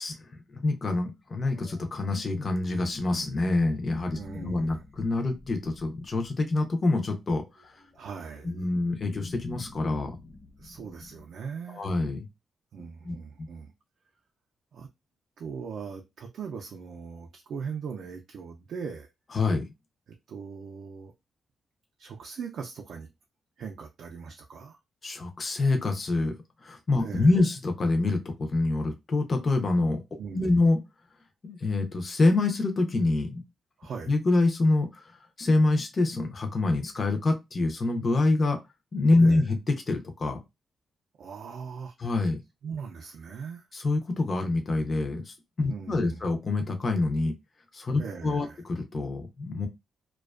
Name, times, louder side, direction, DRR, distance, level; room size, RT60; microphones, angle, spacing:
voice 1, 0.0-7.7 8.4-10.2 11.7-12.2 13.0-13.5 19.3-19.7 25.0-26.4 26.6-30.0 30.3-30.8 31.4-33.4 34.1-35.1 35.4-38.6 38.9-39.6 39.9-40.4 42.0-42.4 43.7-47.3 47.7-49.7, left 2 dB, 30° left, 0.4 m, -26 dB
sound 1, 1.5-6.5 7.5-11.2, left 3 dB, 55° left, 0.8 m, -46 dB
voice 2, 4.1-4.8 7.9-8.5 10.6-11.9 12.7-13.7 14.7-14.9 15.4-19.1 20.1-21.1 22.0-23.1 23.6-24.8 27.0-27.3 30.2-30.6 33.8-34.1 39.2-39.5 41.2-41.9 42.6-43.7 45.7-46.2 48.0-48.6, right 6 dB, 65° right, 0.3 m, -40 dB
2.4 x 2.2 x 2.3 m
wide cardioid pair, 170°, 0 cm